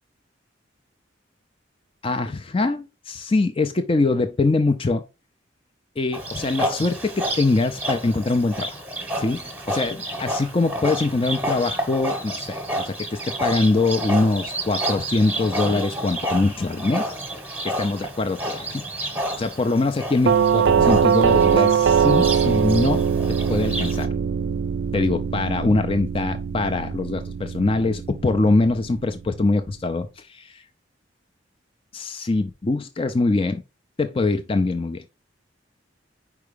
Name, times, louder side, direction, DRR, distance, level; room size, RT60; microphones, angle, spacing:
voice 1, 2.0-5.0 6.0-8.8 9.2-17.2 17.6-23.1 23.5-24.1 24.9-30.6 31.9-33.6 34.0-35.0, left 3 dB, 30° left, 0.5 m, -23 dB
Livestock farm animals working animals, 6.1-24.0, right 1 dB, 10° right, 1.0 m, -30 dB
Doorbell, 20.3-29.1, right 7 dB, 65° right, 0.3 m, -21 dB
4.8 x 4.7 x 5.0 m
head